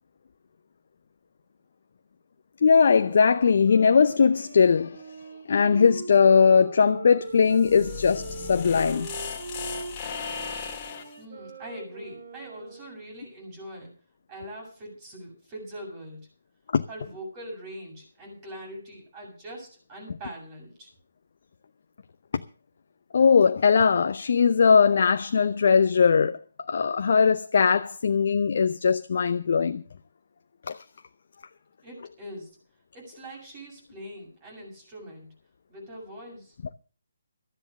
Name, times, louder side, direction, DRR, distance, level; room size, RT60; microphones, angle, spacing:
voice 1, 2.6-5.0 5.5-9.1 16.7-16.8 23.1-26.4 26.7-29.8 30.7-30.8, left 6 dB, 55° left, 0.7 m, -20 dB
Wind instrument woodwind instrument, 3.0-13.0, right 5 dB, 50° right, 2.6 m, -41 dB
sound 1, 7.3-11.2, left 6 dB, 30° left, 2.2 m, -37 dB
voice 2, 11.2-13.9 14.3-16.2 16.9-20.9 31.8-32.6 32.9-35.3 35.7-36.6, equal, 25° right, 7.4 m, -42 dB
13.5 x 10.0 x 6.5 m
figure-of-eight pair, 145°, 0 cm